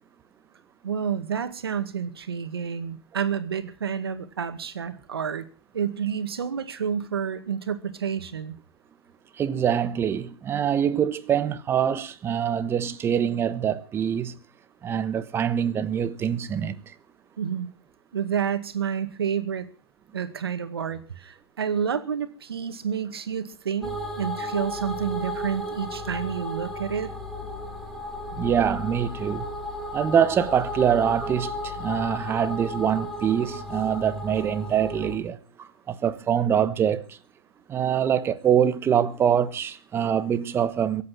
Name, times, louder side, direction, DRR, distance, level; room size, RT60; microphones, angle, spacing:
voice 1, 0.8-5.5 5.7-8.6 17.4-17.7 18.1-19.7 20.1-27.1, right 7 dB, 80° right, 2.1 m, -29 dB
voice 2, 9.4-14.3 14.8-16.9 28.3-29.5 29.9-37.2 37.7-41.0, right 8 dB, 20° right, 1.2 m, -24 dB
sound 1, 23.8-35.2, left 1 dB, ahead, 3.6 m, -34 dB
23.0 x 8.5 x 6.1 m
hypercardioid pair, 125°, 13 cm